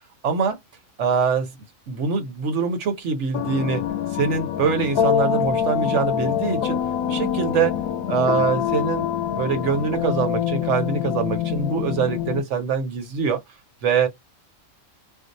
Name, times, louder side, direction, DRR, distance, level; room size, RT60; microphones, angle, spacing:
voice 1, 0.2-0.6 1.0-1.5 1.9-3.8 4.1-6.8 7.1-7.8 8.1-9.1 9.3-13.4 13.8-14.1, right 5 dB, 60° right, 1.1 m, -23 dB
sound 1, 3.3-12.4, left 9 dB, 90° left, 1.0 m, -25 dB
2.6 x 2.1 x 4.0 m
omnidirectional pair, 1.5 m